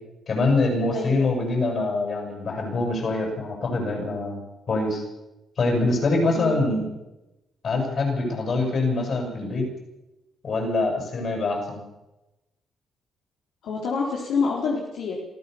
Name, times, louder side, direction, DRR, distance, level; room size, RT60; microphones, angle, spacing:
voice 1, 0.3-5.0 5.6-6.9 7.6-9.6 10.4-11.8, left 2 dB, 50° left, 2 dB, 7.9 m, -24 dB
voice 2, 0.9-1.6 6.3-6.7 13.6-15.1, left 5 dB, 75° left, -2 dB, 3.6 m, -27 dB
25.5 x 14.5 x 7.0 m, 1.0 s
cardioid pair, 90°, 0 cm